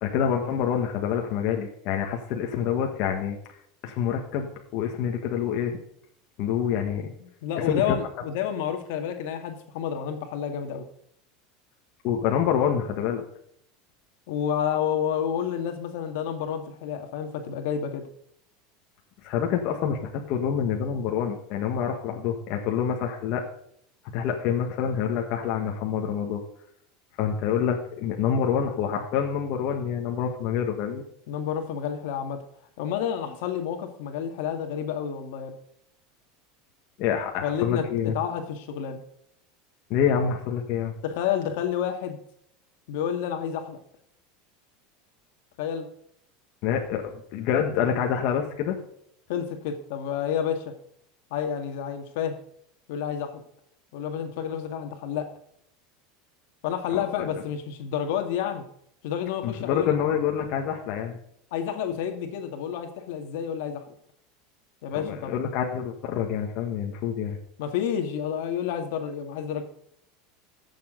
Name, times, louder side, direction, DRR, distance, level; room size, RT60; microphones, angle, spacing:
voice 1, 0.0-3.4 3.8-5.8 6.4-7.1 7.5-8.0 12.0-13.2 19.2-23.4 24.1-26.4 27.2-31.0 37.0-38.1 39.9-40.9 46.6-48.8 56.9-57.3 59.4-61.2 64.9-67.4, left 8 dB, 55° left, 2 dB, 1.7 m, -27 dB
voice 2, 7.2-10.8 14.3-18.1 31.3-32.4 32.8-35.5 37.4-39.0 41.0-42.2 42.9-43.8 45.6-45.9 49.3-50.6 51.3-52.3 52.9-53.4 53.9-55.3 56.6-58.6 59.0-59.9 61.5-63.8 64.8-65.4 67.6-69.6, left 8 dB, 70° left, 5 dB, 1.9 m, -30 dB
14.0 x 7.5 x 3.9 m, 0.69 s
supercardioid pair, 145°, 0 cm